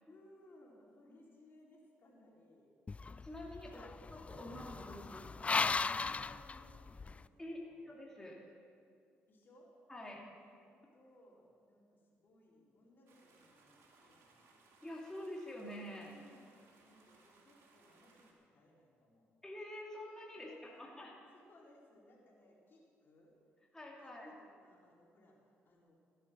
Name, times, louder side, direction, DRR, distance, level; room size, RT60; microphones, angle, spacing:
voice 1, 0.1-2.7 3.6-4.1 5.8-7.8 9.3-9.7 10.0-14.6 16.0-16.5 16.8-19.3 20.3-20.9 21.3-23.4 24.0-24.1 24.4-26.0, left 1 dB, 50° left, -3 dB, 4.3 m, -64 dB
sound 1, 2.9-7.2, left 4 dB, 25° left, 0.3 m, -38 dB
voice 2, 3.2-3.8 4.1-5.6 7.4-8.4 9.9-10.2 14.8-16.1 19.4-21.1 23.7-24.3, left 1 dB, 10° left, -3 dB, 2.6 m, -47 dB
sound 2, 13.1-18.3, right 3 dB, 75° right, 2.1 m, -67 dB
15.0 x 9.8 x 6.2 m, 2.3 s
supercardioid pair, 65°, 5 cm